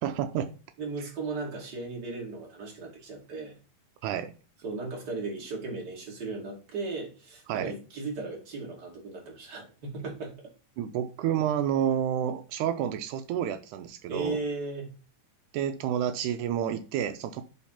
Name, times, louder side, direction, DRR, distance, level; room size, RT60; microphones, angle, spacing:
voice 1, 0.0-0.5 4.0-4.3 7.5-7.7 10.8-14.4 15.5-17.4, right 9 dB, 90° right, 1.7 m, -29 dB
voice 2, 0.8-3.6 4.6-10.4 14.1-14.9, right 3 dB, 30° right, 2.6 m, -36 dB
7.4 x 4.0 x 5.7 m
omnidirectional pair, 4.2 m